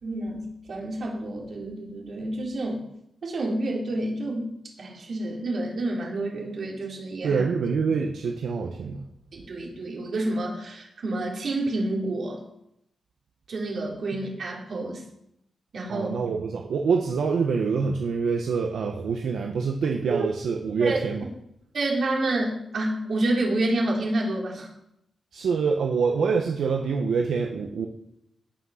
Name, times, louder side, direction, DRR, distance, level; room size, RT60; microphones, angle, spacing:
voice 1, 0.0-2.9 3.2-4.5 4.8-7.4 9.3-12.4 13.5-15.0 15.7-16.1 20.1-20.2 20.8-21.0 21.7-24.7, right 2 dB, 55° right, -2 dB, 3.6 m, -29 dB
voice 2, 7.2-9.0 15.9-21.2 25.3-27.9, right 5 dB, 80° right, 2 dB, 1.2 m, -25 dB
17.0 x 6.3 x 5.8 m, 0.77 s
wide cardioid pair, 150°, 0 cm